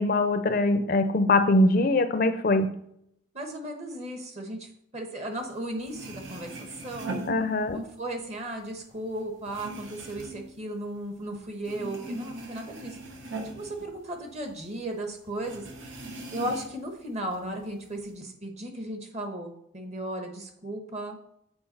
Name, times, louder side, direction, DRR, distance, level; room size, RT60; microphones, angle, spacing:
voice 1, 0.0-2.7 7.3-7.8, left 2 dB, 50° left, 9 dB, 0.5 m, -22 dB
voice 2, 3.3-7.1 7.7-13.0 13.5-15.6 16.3-21.2, right 1 dB, 35° right, 4 dB, 1.1 m, -36 dB
sound 1, 5.6-5.7 5.8-8.1 8.4-11.3 11.6-14.6 14.9-15.0 15.4-16.9 17.3-18.1, right 2 dB, 85° right, 1.2 m, -40 dB
7.7 x 4.5 x 4.2 m, 0.73 s
head